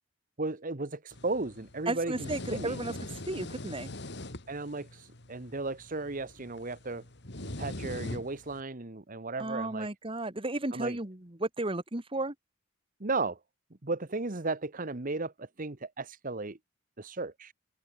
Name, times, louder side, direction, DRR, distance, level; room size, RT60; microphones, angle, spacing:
voice 1, 0.4-2.8 4.5-7.0 7.4-9.9 10.7-11.0 13.0-13.4 13.8-16.6 17.0-17.5, right 3 dB, 45° right, 1.3 m, -35 dB
sound 1, 1.1-8.6, left 1 dB, 60° left, 2.9 m, -42 dB
voice 2, 1.9-2.9 3.3-3.9 9.4-12.3, right 2 dB, 25° right, 1.9 m, -33 dB
open air
head